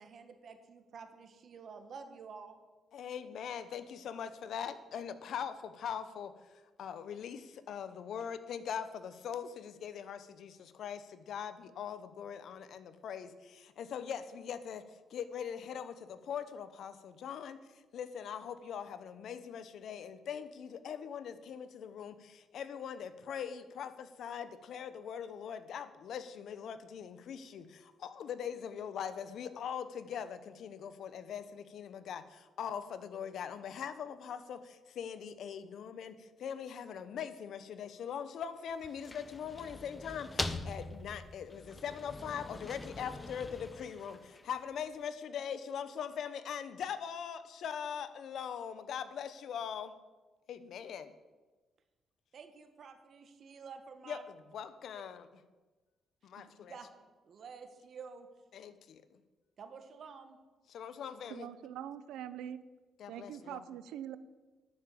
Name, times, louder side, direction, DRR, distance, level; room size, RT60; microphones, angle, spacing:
voice 1, 0.0-2.6 52.3-54.2 56.4-56.9 57.2-58.3 59.6-60.4, right 5 dB, 55° right, 8 dB, 1.5 m, -50 dB
voice 2, 2.9-14.8 15.1-50.0 50.5-51.1 54.1-55.3 56.2-56.8 58.5-59.2 60.7-61.5 63.0-63.7, left 8 dB, 70° left, 13 dB, 0.9 m, -42 dB
sound 1, 38.7-44.7, left 2 dB, 20° left, 0.8 m, -43 dB
voice 3, 61.3-62.6 63.1-64.2, right 10 dB, 90° right, 14 dB, 0.6 m, -43 dB
10.5 x 7.0 x 8.5 m, 1.2 s
cardioid pair, 90°, 0 cm